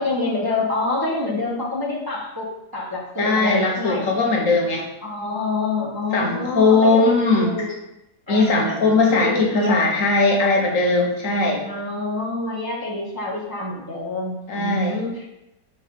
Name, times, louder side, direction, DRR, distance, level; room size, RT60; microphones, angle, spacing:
voice 1, 0.0-4.4 5.0-7.8 8.3-9.9 11.6-15.3, left 2 dB, 15° right, -4 dB, 0.9 m, -27 dB
voice 2, 3.2-4.9 6.1-7.5 8.3-11.6 14.5-15.0, left 3 dB, 60° left, 1 dB, 1.4 m, -19 dB
5.5 x 3.9 x 5.1 m, 0.88 s
omnidirectional pair, 1.6 m